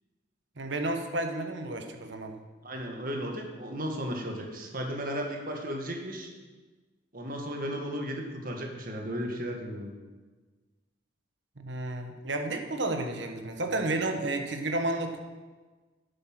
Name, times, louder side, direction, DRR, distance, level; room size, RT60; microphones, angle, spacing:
voice 1, 0.6-2.3 11.6-15.2, right 2 dB, 65° right, 4 dB, 1.3 m, -31 dB
voice 2, 2.6-6.3 7.1-9.9, equal, 45° right, 2 dB, 1.6 m, -35 dB
11.0 x 8.0 x 6.1 m, 1.3 s
head